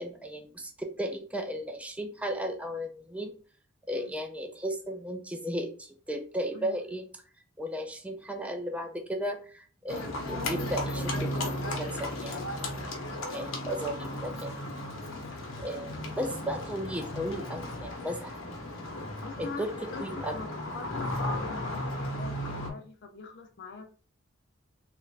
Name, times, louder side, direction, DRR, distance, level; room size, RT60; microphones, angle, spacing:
voice 1, 0.0-3.3 3.9-7.0 7.6-12.9 13.3-15.1 15.6-18.3 19.4-19.7 20.0-20.3, equal, 5° right, 5 dB, 0.4 m, -35 dB
Livestock farm animals working animals, 9.9-22.7, left 1 dB, 85° left, 0.9 m, -35 dB
voice 2, 19.0-19.7 19.9-23.9, left 3 dB, 55° left, 4 dB, 0.5 m, -43 dB
3.3 x 2.5 x 3.1 m, 0.40 s
head